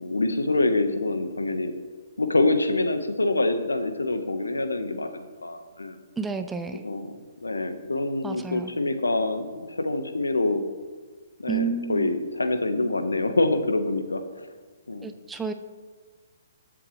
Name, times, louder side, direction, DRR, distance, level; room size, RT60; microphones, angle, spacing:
voice 1, 0.0-1.7 2.2-5.9 6.8-10.6 11.4-14.5 14.9-15.1, left 2 dB, 80° left, 7 dB, 1.3 m, -26 dB
voice 2, 6.2-6.8 8.2-8.7 11.5-12.1 15.0-15.5, right 5 dB, 10° right, 7 dB, 0.6 m, -30 dB
22.5 x 7.6 x 3.3 m, 1.5 s
figure-of-eight pair, 130°, 0 cm